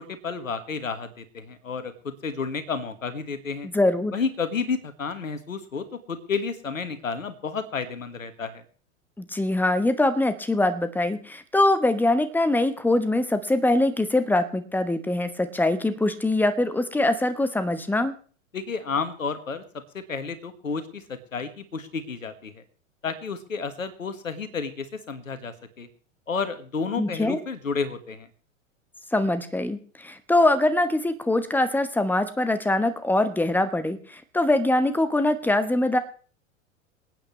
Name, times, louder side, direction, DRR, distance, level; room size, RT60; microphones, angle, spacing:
voice 1, 0.0-3.7 4.1-8.6 18.5-19.6 19.9-22.6 23.0-25.9 26.3-28.3, left 5 dB, 85° left, 11 dB, 1.6 m, -31 dB
voice 2, 3.7-4.1 9.2-18.1 27.0-27.4 29.1-36.0, left 2 dB, 5° left, 11 dB, 1.0 m, -23 dB
27.0 x 9.0 x 3.2 m, 0.41 s
figure-of-eight pair, 95°, 39 cm